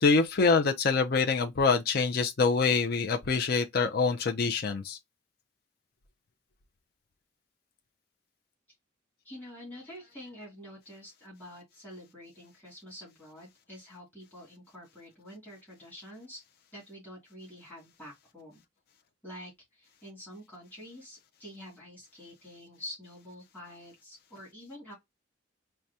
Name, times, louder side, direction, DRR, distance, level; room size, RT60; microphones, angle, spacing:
voice 1, 0.0-5.0, left 4 dB, 55° left, 0.5 m, -25 dB
voice 2, 9.2-16.4 16.7-18.6 19.2-24.9, left 1 dB, 10° left, 2.3 m, -47 dB
4.7 x 2.2 x 2.7 m
head